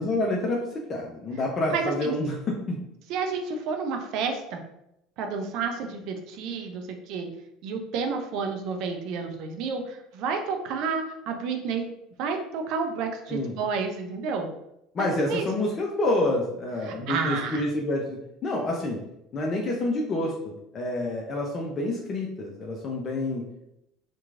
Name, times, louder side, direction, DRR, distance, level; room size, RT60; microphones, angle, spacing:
voice 1, 0.0-2.8 13.3-13.5 14.9-19.0 19.3-23.5, left 2 dB, 40° left, -1 dB, 0.5 m, -28 dB
voice 2, 1.7-2.1 3.1-4.6 5.2-7.3 7.6-11.9 12.2-14.5 15.3-15.5 16.8-17.6, right 5 dB, 60° right, 4 dB, 0.4 m, -30 dB
2.9 x 2.2 x 2.4 m, 0.81 s
figure-of-eight pair, 65°, 0 cm